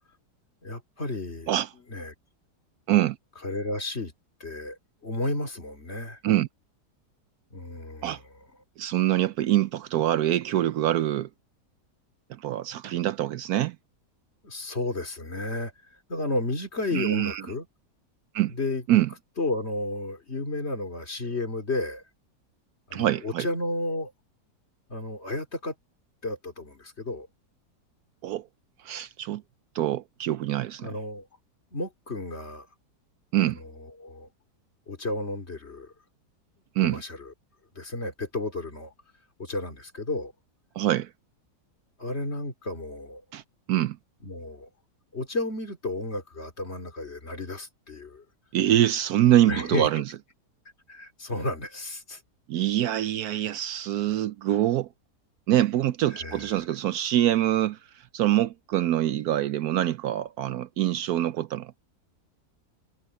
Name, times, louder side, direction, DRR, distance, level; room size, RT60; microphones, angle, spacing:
voice 1, 0.6-1.5 1.9-2.1 3.4-4.1 4.4-6.2 7.5-8.2 14.4-15.7 16.1-17.7 18.5-18.8 19.4-22.0 22.9-24.1 24.9-25.7 26.2-27.3 30.8-31.3 31.7-32.7 33.6-34.3 34.9-35.9 36.8-37.3 37.7-38.9 39.4-40.3 42.0-43.2 44.2-44.7 45.1-48.2 49.4-50.0 50.9-52.2 56.1-56.5, left 2 dB, 40° left, 3.0 m, -32 dB
voice 2, 8.8-11.3 12.3-13.8 16.9-17.4 18.3-18.5 18.9-19.1 22.9-23.5 28.2-28.5 28.8-29.4 29.7-30.9 33.3-33.6 36.8-37.0 40.7-41.1 43.3-43.4 43.7-44.0 48.5-50.0 52.5-54.9 55.5-57.8 58.1-61.7, right 13 dB, 70° right, 1.1 m, -24 dB
omnidirectional pair, 1.8 m